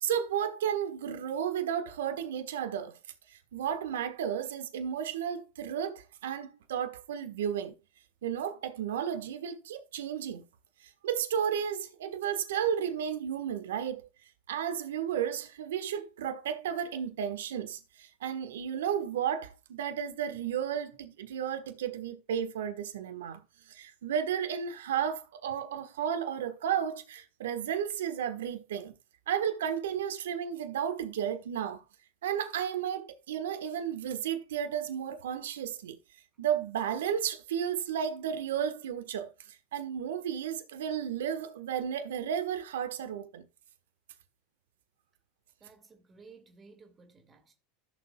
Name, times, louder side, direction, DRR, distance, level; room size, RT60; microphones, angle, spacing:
voice 1, 0.0-3.0 3.3-7.7 8.2-10.4 11.0-14.1 14.5-28.9 29.3-31.8 32.2-36.0 36.4-43.4, right 9 dB, 75° right, 1.3 m, -33 dB
voice 2, 45.6-47.5, right 4 dB, 25° right, 2.1 m, -56 dB
15.0 x 6.8 x 2.3 m
hypercardioid pair, 85°, 0 cm